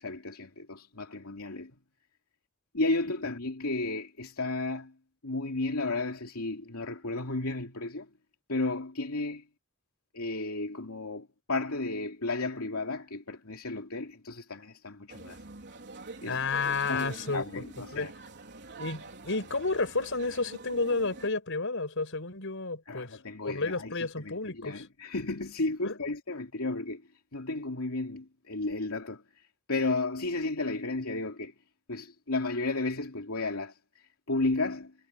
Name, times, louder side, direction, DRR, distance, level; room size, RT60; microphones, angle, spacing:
voice 1, 0.0-1.7 2.7-4.9 5.2-8.1 8.5-9.4 10.1-15.4 16.2-16.4 16.7-18.1 22.9-27.0 27.3-31.5 31.9-34.9, left 2 dB, 85° left, 2.8 m, -33 dB
sound 1, 15.1-21.3, right 3 dB, 55° right, 4.2 m, -46 dB
voice 2, 16.3-17.4 17.9-18.1 18.8-24.9 25.8-26.0, left 3 dB, 65° left, 5.7 m, -31 dB
head